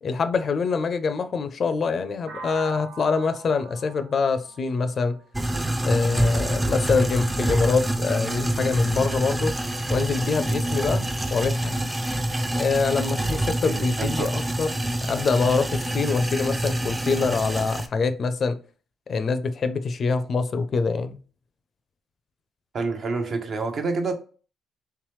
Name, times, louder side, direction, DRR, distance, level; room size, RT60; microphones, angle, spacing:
voice 1, 0.0-5.2 5.8-9.6 9.9-11.8 12.6-14.7 15.0-18.6 19.1-21.2, left 4 dB, 50° left, 0.4 m, -25 dB
sound 1, 2.3-6.1, right 3 dB, 85° right, 0.7 m, -43 dB
sound 2, 5.3-17.9, right 1 dB, 15° right, 0.4 m, -26 dB
voice 2, 13.6-14.3 22.7-24.1, right 3 dB, 55° right, 0.8 m, -28 dB
3.4 x 3.1 x 3.1 m
cardioid pair, 90°, 0 cm